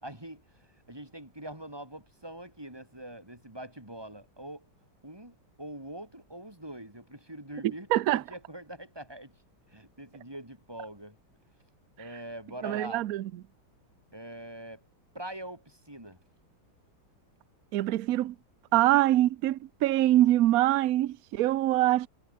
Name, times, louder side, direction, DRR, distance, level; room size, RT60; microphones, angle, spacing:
voice 1, 0.0-4.7 5.0-9.3 9.7-11.2 12.0-13.0 14.1-14.8 15.1-16.2, right 1 dB, 10° right, 4.7 m, -43 dB
voice 2, 7.9-8.2 12.6-13.2 17.7-18.4 18.7-22.1, right 14 dB, 80° right, 0.8 m, -24 dB
omnidirectional pair, 2.3 m